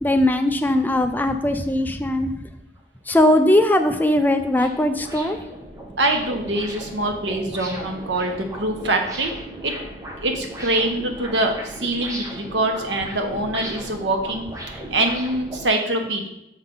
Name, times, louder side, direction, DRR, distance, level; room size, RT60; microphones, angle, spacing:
voice 1, 0.0-2.3 3.1-5.4, left 1 dB, 10° left, 7 dB, 0.4 m, -19 dB
sound 1, 2.8-2.9 3.3-15.7, right 1 dB, 20° right, 0.9 m, -37 dB
voice 2, 6.0-9.7 10.2-16.3, right 2 dB, 85° right, 4 dB, 1.1 m, -24 dB
6.6 x 5.6 x 3.8 m, 0.85 s
head